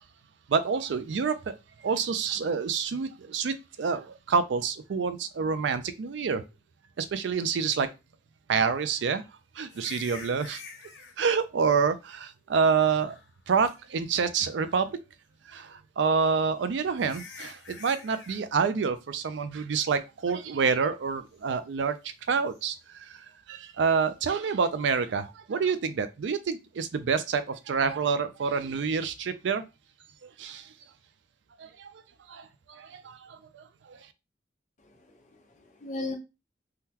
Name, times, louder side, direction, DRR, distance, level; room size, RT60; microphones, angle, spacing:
voice 1, 0.5-1.4 1.8-6.4 7.0-7.9 8.5-9.2 9.6-10.6 11.2-13.2 13.5-15.0 15.5-29.6 30.2-30.7 31.6-31.9 32.3-34.0, right 5 dB, 85° right, 0.4 m, -28 dB
sound 1, 9.7-11.2 12.8-13.4 13.6-13.8 14.4-14.9 16.3-16.4 17.0-18.4 22.5-22.7, left 5 dB, 90° left, 0.8 m, -46 dB
voice 2, 34.8-36.1, left 2 dB, 40° left, 0.8 m, -38 dB
3.6 x 2.2 x 2.8 m
head